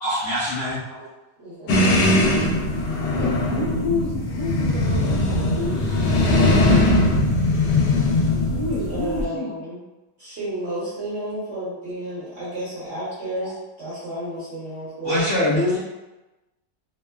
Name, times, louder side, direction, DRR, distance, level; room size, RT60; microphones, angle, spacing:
voice 1, 0.0-0.8 15.0-15.8, left 1 dB, 60° left, -10 dB, 0.8 m, -22 dB
voice 2, 1.4-1.8 8.8-9.8 10.2-15.3, right 1 dB, 45° right, -10 dB, 1.1 m, -32 dB
sound 1, 1.7-9.2, left 1 dB, 80° left, 1.2 m, -20 dB
voice 3, 3.1-7.0 7.3-7.4 8.4-9.5, left 3 dB, 25° left, -10 dB, 0.8 m, -30 dB
2.9 x 2.1 x 2.2 m, 1.0 s
omnidirectional pair, 1.9 m